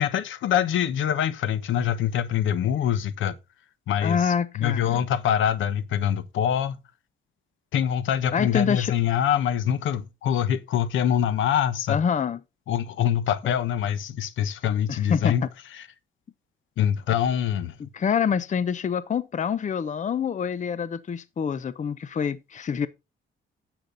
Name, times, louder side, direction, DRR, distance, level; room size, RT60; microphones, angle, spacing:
voice 1, 0.0-3.4 3.9-6.8 7.7-12.0 12.7-15.5 15.8-15.9 16.8-17.7, left 9 dB, 80° left, 1.2 m, -24 dB
voice 2, 4.0-5.0 8.3-8.9 11.9-12.4 14.9-15.3 17.8-22.9, left 7 dB, 40° left, 0.8 m, -26 dB
10.5 x 7.9 x 4.0 m
cardioid pair, 90°, 20 cm